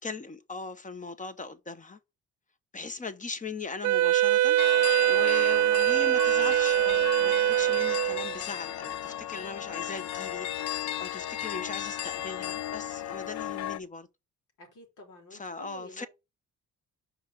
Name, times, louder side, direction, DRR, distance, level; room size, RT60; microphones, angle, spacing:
voice 1, 0.0-2.0 2.7-4.6 5.1-14.1 15.3-16.1, left 4 dB, 25° left, 1.0 m, -39 dB
Wind instrument woodwind instrument, 3.8-8.4, right 14 dB, 80° right, 0.5 m, -23 dB
sound 1, 4.6-13.8, left 12 dB, 65° left, 0.6 m, -35 dB
voice 2, 14.6-16.1, left 1 dB, 85° left, 3.6 m, -49 dB
5.5 x 4.9 x 5.7 m
cardioid pair, 90°, 30 cm